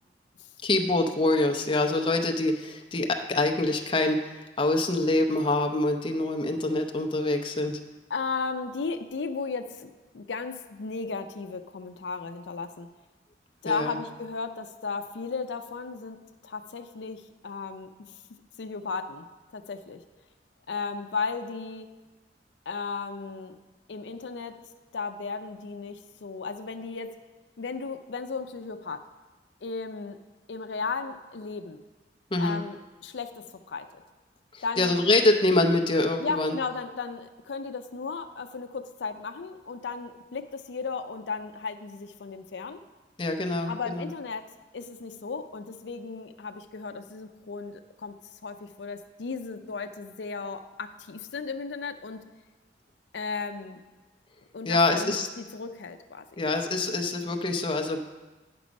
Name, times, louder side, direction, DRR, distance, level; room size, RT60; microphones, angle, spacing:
voice 1, 0.6-7.8 13.7-14.0 32.3-32.6 34.5-36.5 43.2-44.1 54.6-55.3 56.4-58.0, left 2 dB, 30° left, 4 dB, 0.6 m, -25 dB
voice 2, 8.1-12.9 13.6-17.9 18.6-19.3 19.5-20.0 20.7-21.9 22.7-23.6 23.9-24.6 24.9-27.1 27.6-29.0 29.6-30.2 30.5-31.8 32.4-34.0 34.6-35.0 36.2-42.8 43.7-44.5 44.7-48.2 48.4-52.2 53.1-53.8 54.5-56.4, left 4 dB, 85° left, 7 dB, 0.5 m, -35 dB
9.6 x 6.1 x 5.2 m, 1.2 s
head